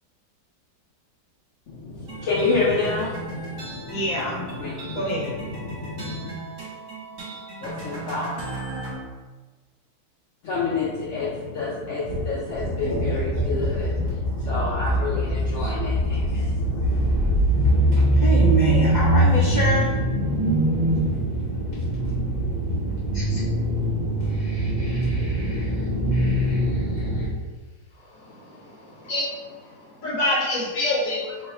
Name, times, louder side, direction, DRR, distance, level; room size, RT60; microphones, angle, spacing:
voice 1, 1.7-6.3 7.6-8.3 10.4-17.2, left 3 dB, 85° left, -6 dB, 0.6 m, -29 dB
sound 1, 2.1-8.9, right 2 dB, 50° right, 1.5 m, -37 dB
voice 2, 3.9-4.4 4.9-5.3 12.1-27.3 31.4-31.5, right 1 dB, 70° right, -9 dB, 0.4 m, -22 dB
voice 3, 28.2-29.5 30.0-31.3, left 1 dB, 55° left, -5 dB, 1.2 m, -26 dB
3.2 x 2.3 x 4.1 m, 1.3 s
omnidirectional pair, 2.0 m